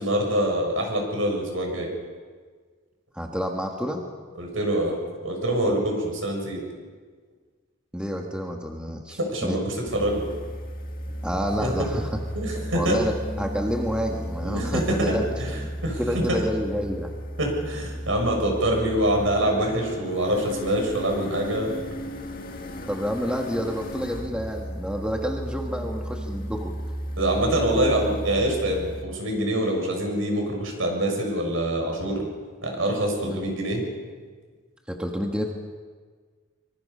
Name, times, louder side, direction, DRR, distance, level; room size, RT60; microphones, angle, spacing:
voice 1, 0.0-1.9 4.4-5.0 5.2-6.6 9.2-10.2 11.6-11.7 12.3-13.0 14.4-15.0 15.4-15.5 15.8-16.0 16.3-16.4 17.4-21.7 27.2-32.2 32.6-33.8, right 1 dB, 70° right, 1 dB, 6.8 m, -25 dB
voice 2, 3.1-4.0 7.9-9.6 11.2-12.1 12.7-15.3 15.5-15.7 16.0-17.1 22.9-26.7 33.3-33.4 34.9-35.5, equal, 5° right, 1 dB, 1.6 m, -29 dB
sound 1, 9.8-29.0, equal, 45° left, 2.0 m, -34 dB
25.0 x 24.5 x 5.6 m, 1.5 s
head